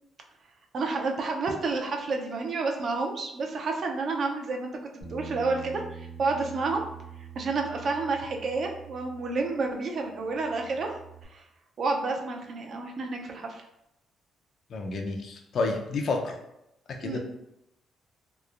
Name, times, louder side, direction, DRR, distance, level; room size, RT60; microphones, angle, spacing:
voice 1, 0.7-6.8 7.4-10.9 11.3-11.4 11.8-13.6 17.0-17.2, right 3 dB, 55° right, 2 dB, 0.4 m, -30 dB
Bass guitar, 5.0-9.8 10.1-11.3, right 5 dB, 80° left, 1.1 m, -45 dB
voice 2, 14.7-16.4 17.0-17.2, left 3 dB, 60° left, 3 dB, 0.4 m, -30 dB
2.9 x 2.0 x 2.4 m, 0.85 s
cardioid pair, 90°, 0 cm